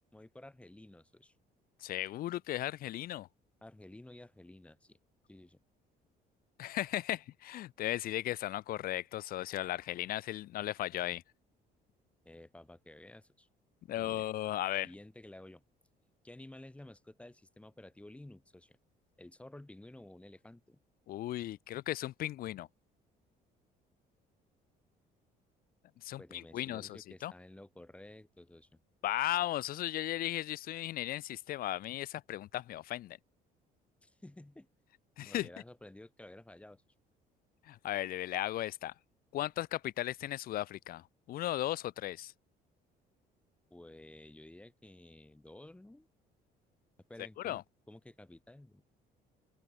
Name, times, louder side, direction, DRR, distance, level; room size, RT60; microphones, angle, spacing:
voice 1, 0.1-1.3 3.6-5.0 5.3-5.6 12.2-13.5 13.9-14.2 14.8-15.6 16.2-18.8 19.2-20.8 26.2-28.7 34.0-34.7 35.3-36.9 43.7-46.1 47.1-47.6 47.9-48.8, left 1 dB, 5° left, 1.1 m, -53 dB
voice 2, 1.8-3.3 6.6-11.2 13.9-14.9 21.1-22.7 26.0-27.3 29.0-33.2 35.2-35.5 37.7-38.9 39.3-42.3 47.4-47.6, left 14 dB, 60° left, 0.5 m, -36 dB
open air
cardioid pair, 110°, 17 cm